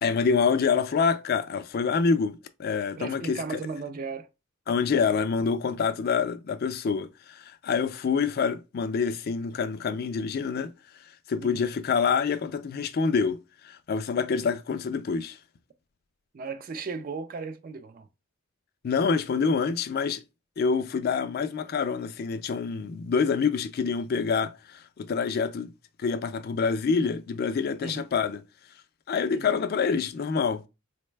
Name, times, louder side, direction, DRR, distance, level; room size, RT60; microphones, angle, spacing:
voice 1, 0.0-3.6 4.7-10.7 11.3-15.4 18.8-20.2 20.6-25.7 26.0-28.4 29.1-30.6, left 5 dB, 45° left, 0.3 m, -26 dB
voice 2, 3.0-4.3 4.9-5.1 11.4-11.6 16.3-18.1 27.8-28.0 29.3-29.5, right 4 dB, 45° right, 0.4 m, -36 dB
4.0 x 2.1 x 3.1 m
head